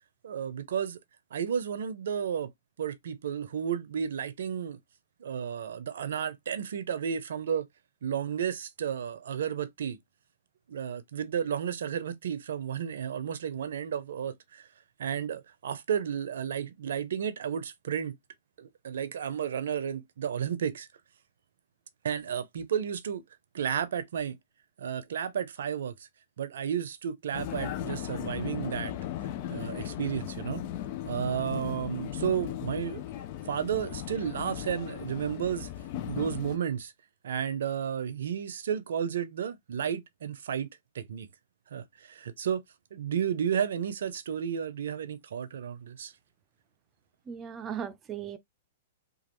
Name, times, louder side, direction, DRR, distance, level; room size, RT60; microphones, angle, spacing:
voice 1, 0.2-1.0 1.3-2.5 2.8-4.8 5.2-7.7 8.0-10.0 10.7-14.7 15.0-18.2 18.6-20.9 22.0-23.2 23.5-24.4 24.8-25.9 26.4-28.9 29.5-30.6 31.0-33.0 33.5-35.7 36.0-36.9 37.2-40.7 40.9-41.3 41.7-42.6 42.9-46.1, right 8 dB, 75° right, 0.6 m, -32 dB
Vehicle, 27.3-36.6, left 11 dB, 50° left, 0.5 m, -37 dB
voice 2, 47.3-48.4, right 8 dB, 25° right, 0.5 m, -37 dB
2.9 x 2.4 x 3.0 m
hypercardioid pair, 130°, 0 cm